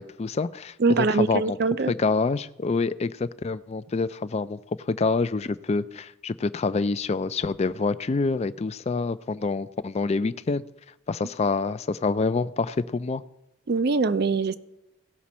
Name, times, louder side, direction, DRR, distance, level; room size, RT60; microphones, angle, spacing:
voice 1, 0.0-1.6 1.9-10.6 11.1-13.2, left 4 dB, 30° left, 15 dB, 0.3 m, -27 dB
voice 2, 0.8-1.9 13.7-14.5, right 4 dB, 50° right, 14 dB, 0.4 m, -23 dB
17.0 x 6.0 x 4.2 m, 0.88 s
head